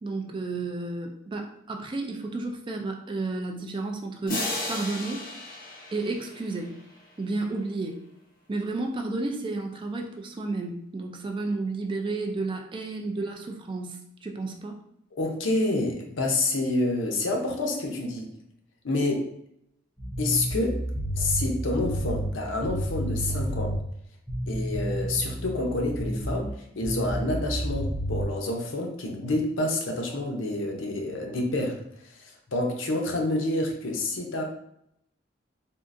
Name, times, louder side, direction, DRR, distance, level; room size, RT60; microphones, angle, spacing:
voice 1, 0.0-4.4 4.7-5.3 5.9-6.7 7.2-8.0 8.5-14.8, right 3 dB, 25° right, 3 dB, 0.3 m, -32 dB
sound 1, 4.3-7.1, left 1 dB, 45° left, 0.7 m, -34 dB
voice 2, 15.2-18.3 18.8-19.3 20.2-20.8 21.1-23.7 24.5-26.5 26.7-31.8 32.1-34.4, left 2 dB, 80° left, 1 dB, 0.6 m, -28 dB
sound 2, 20.0-23.9 24.3-26.5 26.8-28.3, right 1 dB, 10° left, 0.7 m, -30 dB
3.7 x 2.4 x 2.5 m, 0.74 s
head